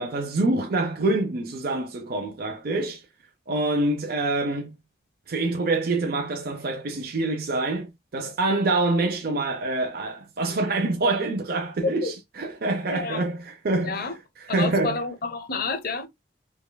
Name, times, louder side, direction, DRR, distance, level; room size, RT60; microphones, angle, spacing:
voice 1, 0.0-3.0 3.5-4.7 5.3-14.1 14.4-15.0, right 2 dB, 55° right, 0.6 m, -26 dB
voice 2, 12.9-13.3 13.8-14.2 14.5-16.1, left 4 dB, 55° left, 0.7 m, -30 dB
5.3 x 2.2 x 2.2 m
head